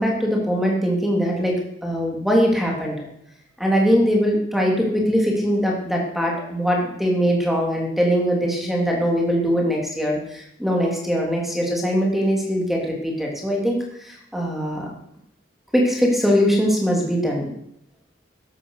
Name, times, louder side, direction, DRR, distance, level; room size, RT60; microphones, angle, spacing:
voice 1, 0.0-3.0 3.6-14.9 15.7-17.5, equal, ahead, -1 dB, 3.3 m, -21 dB
14.5 x 11.0 x 6.6 m, 0.76 s
head